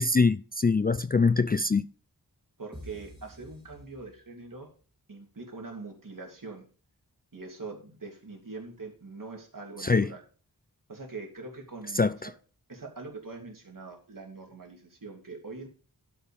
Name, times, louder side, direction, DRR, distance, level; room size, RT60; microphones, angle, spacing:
voice 1, 0.0-1.9 9.8-10.1 12.0-12.3, left 4 dB, 25° left, 0.3 m, -24 dB
voice 2, 2.6-4.7 5.1-6.6 7.3-10.2 10.9-12.3 12.7-15.7, right 3 dB, 60° right, 2.9 m, -43 dB
sound 1, 2.7-4.5, equal, 15° right, 3.5 m, -48 dB
12.0 x 5.4 x 5.1 m
wide cardioid pair, 70°, 38 cm